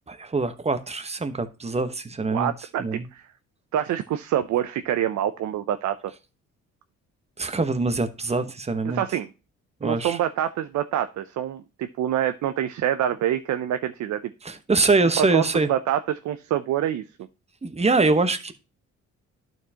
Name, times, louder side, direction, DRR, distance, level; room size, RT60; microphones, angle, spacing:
voice 1, 0.1-2.5 2.8-3.1 7.4-9.0 9.8-10.2 14.4-15.7 17.6-18.5, right 3 dB, 20° right, 1.1 m, -24 dB
voice 2, 2.3-3.3 3.7-6.1 8.9-9.3 9.8-14.3 15.2-15.4 15.7-17.0, right 11 dB, 70° right, 0.6 m, -26 dB
12.0 x 4.6 x 2.8 m
cardioid pair, 90°, 30 cm